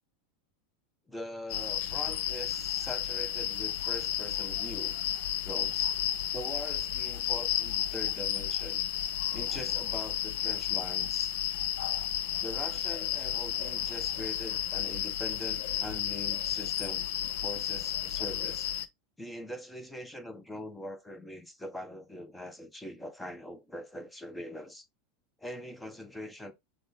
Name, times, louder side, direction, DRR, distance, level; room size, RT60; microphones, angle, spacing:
voice 1, 1.1-5.0 5.4-5.9 6.3-8.8 9.3-11.3 12.4-17.1 17.4-18.7 19.2-24.8 25.4-26.5, left 1 dB, 5° left, 0.9 m, -42 dB
sound 1, 1.5-18.9, left 11 dB, 60° left, 0.5 m, -32 dB
6.4 x 2.2 x 3.7 m
hypercardioid pair, 85°, 0 cm